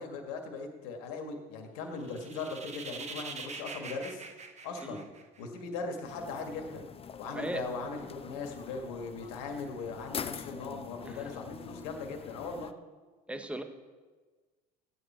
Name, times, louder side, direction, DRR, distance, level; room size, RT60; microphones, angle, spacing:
voice 1, 0.0-4.2 4.6-5.0 5.4-6.9 7.2-12.7, left 4 dB, 80° left, 3 dB, 1.9 m, -39 dB
sound 1, 2.0-5.6, right 4 dB, 35° right, 1.3 m, -44 dB
sound 2, 6.0-12.7, left 7 dB, 30° left, 0.6 m, -44 dB
voice 2, 7.3-7.7 11.0-11.3 13.3-13.6, right 1 dB, 5° right, 8 dB, 1.1 m, -37 dB
15.0 x 9.3 x 4.5 m, 1.4 s
hypercardioid pair, 75°, 20 cm